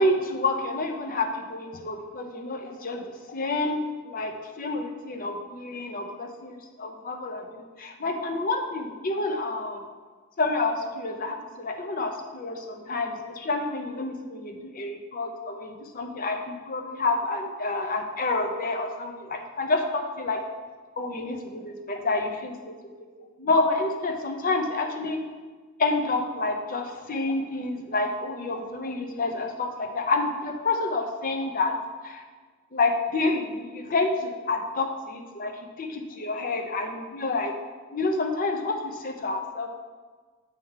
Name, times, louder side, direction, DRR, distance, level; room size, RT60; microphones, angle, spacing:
voice 1, 0.0-3.8 4.0-9.8 10.4-20.4 21.0-22.7 23.4-25.2 25.8-31.7 32.0-32.2 32.7-35.5 35.8-37.5 37.9-39.7, left 2 dB, 40° left, 4 dB, 0.7 m, -28 dB
6.7 x 3.6 x 5.5 m, 1.4 s
head